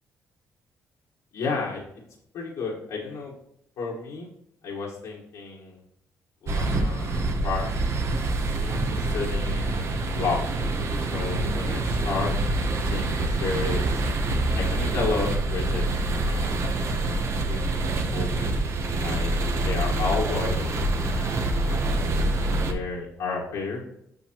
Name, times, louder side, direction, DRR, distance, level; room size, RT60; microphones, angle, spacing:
voice 1, 1.3-1.8 2.3-3.3 3.8-4.3 4.6-5.8 6.4-7.7 8.5-10.4 11.1-12.3 12.8-14.0 14.5-15.8 16.2-16.7 17.5-17.6 17.9-18.6 19.0-19.3 19.6-20.7 21.1-21.9 22.7-23.8, left 4 dB, 80° left, -5 dB, 1.7 m, -32 dB
sound 1, 6.5-22.7, right 2 dB, 55° right, 1.1 m, -26 dB
8.1 x 5.9 x 3.1 m, 0.76 s
cardioid pair, 80°, 6 cm